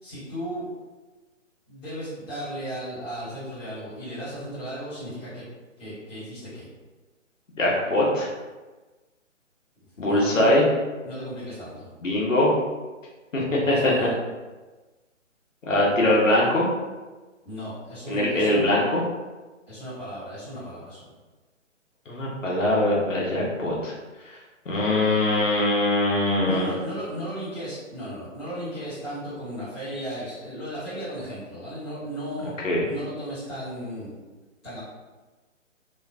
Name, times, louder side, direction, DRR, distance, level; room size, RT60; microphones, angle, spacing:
voice 1, 0.0-0.7 1.7-5.4 5.8-6.7 10.0-10.7 11.0-11.9 13.6-14.2 17.4-18.6 19.7-21.0 26.4-32.5 32.8-34.2 34.6-34.8, equal, 5° left, -18 dB, 0.5 m, -35 dB
voice 2, 7.6-8.3 10.0-10.6 12.0-12.5 13.3-13.9 15.7-16.7 18.1-19.0 22.1-23.9 24.7-26.7 32.6-32.9, left 1 dB, 75° left, -4 dB, 1.0 m, -22 dB
3.1 x 2.1 x 2.4 m, 1.2 s
figure-of-eight pair, 140°, 38 cm